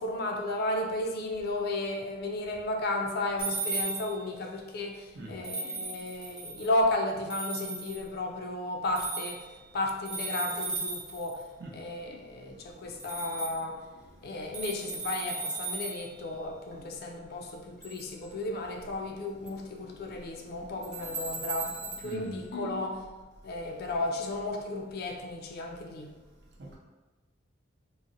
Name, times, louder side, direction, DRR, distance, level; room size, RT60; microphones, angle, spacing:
voice 1, 0.0-9.5 9.7-11.4 11.7-13.9 14.2-23.0 23.4-26.2, left 2 dB, 50° left, 2 dB, 0.4 m, -33 dB
sound 1, 3.4-4.3 5.4-6.7 7.3-8.0 9.0-9.6 10.0-11.4 13.0-13.6 14.5-16.1 17.8-18.0 19.5-19.6 20.8-22.1, right 4 dB, 5° right, 0.6 m, -36 dB
voice 2, 22.0-22.4 26.6-26.8, right 2 dB, 55° right, -3 dB, 0.6 m, -43 dB
3.8 x 2.0 x 2.5 m, 1.2 s
head